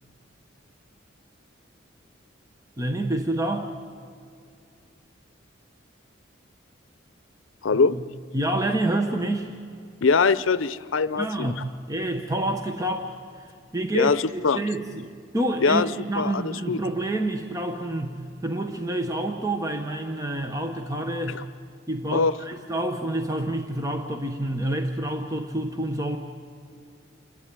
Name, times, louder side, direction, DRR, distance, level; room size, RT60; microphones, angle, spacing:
voice 1, 2.8-3.7 7.9-8.0 8.3-9.5 11.1-21.4 21.9-26.2, right 1 dB, 15° right, 4 dB, 1.0 m, -28 dB
voice 2, 7.6-8.0 10.0-11.6 13.9-14.6 15.6-15.9 16.2-16.8 21.3-21.4 22.1-22.3, left 4 dB, 85° left, 16 dB, 0.6 m, -22 dB
28.0 x 12.0 x 9.4 m, 2.4 s
head